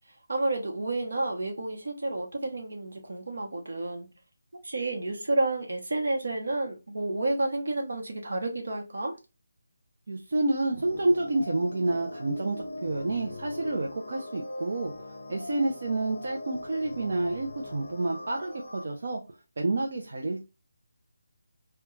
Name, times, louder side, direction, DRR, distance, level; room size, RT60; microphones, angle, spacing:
voice 1, 0.3-4.1 4.6-9.1, right 2 dB, 70° right, 0.8 m, -30 dB
voice 2, 10.1-14.9 15.3-19.2 19.6-20.4, right 2 dB, 55° right, 0.4 m, -29 dB
sound 1, 10.8-18.8, left 2 dB, 55° left, 0.5 m, -41 dB
2.3 x 2.2 x 3.0 m
figure-of-eight pair, 170°, 0 cm